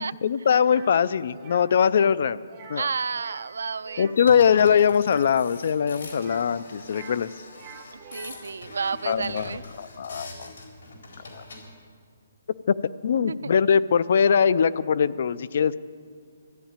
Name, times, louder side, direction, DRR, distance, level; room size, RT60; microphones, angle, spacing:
voice 1, 0.0-2.4 2.7-2.9 4.0-7.3 9.0-10.5 11.3-11.4 12.7-12.8 13.0-15.8, left 7 dB, 40° left, 16 dB, 0.4 m, -22 dB
sound 1, 0.6-1.0 1.3-1.7 2.5-2.9 3.1-3.5 3.8-5.3 6.1-7.2 7.5-8.4, right 6 dB, 20° right, 1.3 m, -46 dB
voice 2, 2.7-4.1 7.9-9.6 13.3-13.5, right 5 dB, 75° right, 17 dB, 0.5 m, -31 dB
sound 2, 4.2-11.6, left 2 dB, 60° left, 4.2 m, -43 dB
14.0 x 11.5 x 8.9 m, 2.1 s
hypercardioid pair, 175°, 0 cm